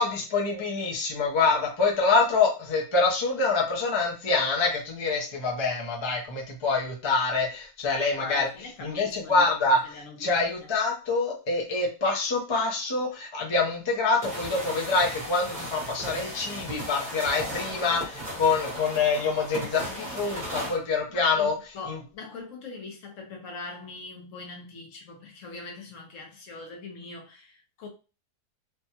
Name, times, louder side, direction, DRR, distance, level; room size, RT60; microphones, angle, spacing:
voice 1, 0.0-8.5 8.8-21.5 21.9-22.0, left 4 dB, 35° left, 0.4 m, -26 dB
voice 2, 8.1-9.4 9.9-10.7 21.1-27.9, left 3 dB, 65° left, 1.0 m, -42 dB
sound 1, 14.2-20.8, equal, 30° right, 1.1 m, -36 dB
3.3 x 2.2 x 2.8 m
omnidirectional pair, 1.6 m